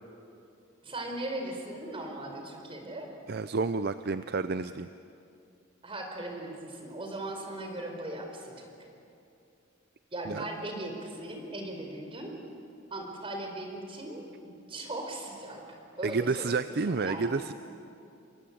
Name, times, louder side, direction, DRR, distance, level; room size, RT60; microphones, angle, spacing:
voice 1, 0.8-3.1 5.8-8.9 10.1-12.4 12.9-17.4, right 1 dB, 25° right, 3 dB, 4.6 m, -39 dB
voice 2, 3.3-4.9 10.3-10.4 16.0-17.5, right 4 dB, 55° right, 12 dB, 0.5 m, -30 dB
28.5 x 23.0 x 8.7 m, 2.6 s
head